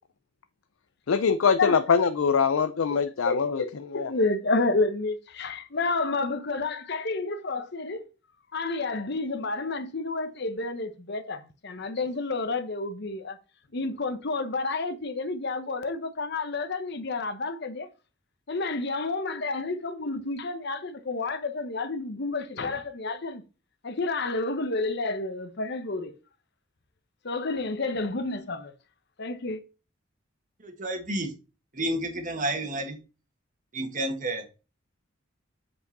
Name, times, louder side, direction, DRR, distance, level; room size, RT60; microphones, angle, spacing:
voice 1, 1.1-3.6 3.9-4.1, left 6 dB, 90° left, 0.5 m, -23 dB
voice 2, 3.2-3.7 3.9-8.0 8.5-13.4 13.7-17.9 18.5-23.4 23.8-26.1 27.2-28.7 29.2-29.6, left 3 dB, 55° left, 0.9 m, -30 dB
voice 3, 30.6-31.3 31.7-33.0 33.7-34.4, right 1 dB, 40° right, 1.5 m, -30 dB
7.6 x 5.2 x 4.0 m
head